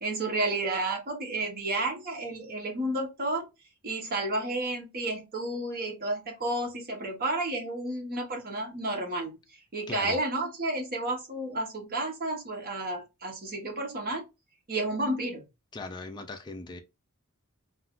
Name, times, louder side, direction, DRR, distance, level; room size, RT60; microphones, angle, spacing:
voice 1, 0.0-3.5 3.8-9.4 9.7-14.3 14.7-15.4, right 2 dB, 45° right, 0.9 m, -31 dB
voice 2, 9.9-10.2 15.7-16.8, left 3 dB, 20° left, 0.4 m, -39 dB
2.4 x 2.4 x 3.5 m
head